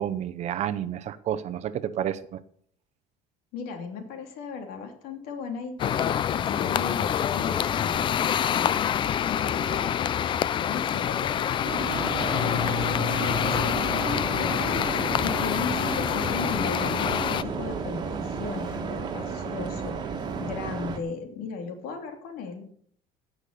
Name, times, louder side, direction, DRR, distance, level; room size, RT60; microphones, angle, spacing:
voice 1, 0.0-2.4, right 10 dB, 45° right, 12 dB, 0.8 m, -30 dB
voice 2, 3.5-8.8 9.3-10.1 10.6-22.6, left 5 dB, 75° left, 4 dB, 3.0 m, -37 dB
sound 1, 5.8-17.4, left 9 dB, 30° left, 0.4 m, -26 dB
sound 2, 11.6-21.0, right 4 dB, 25° right, 1.7 m, -34 dB
sound 3, 11.9-20.9, right 8 dB, 75° right, 1.4 m, -39 dB
16.5 x 6.0 x 6.7 m, 0.62 s
cardioid pair, 155°, 16 cm